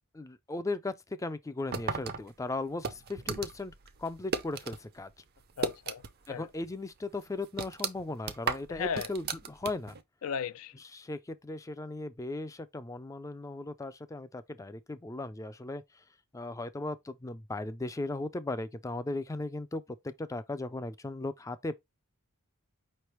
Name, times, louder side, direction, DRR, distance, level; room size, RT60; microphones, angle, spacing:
voice 1, 0.1-3.7 4.0-5.1 6.3-9.9 10.8-15.8 16.3-21.8, left 2 dB, 15° left, 0.3 m, -37 dB
sound 1, 1.7-4.8 5.1-6.3 6.6-6.7 7.2-10.0, right 5 dB, 45° right, 0.5 m, -35 dB
voice 2, 5.6-6.5 8.7-9.1 10.2-10.7, left 7 dB, 75° left, 0.4 m, -36 dB
5.1 x 3.2 x 3.0 m
head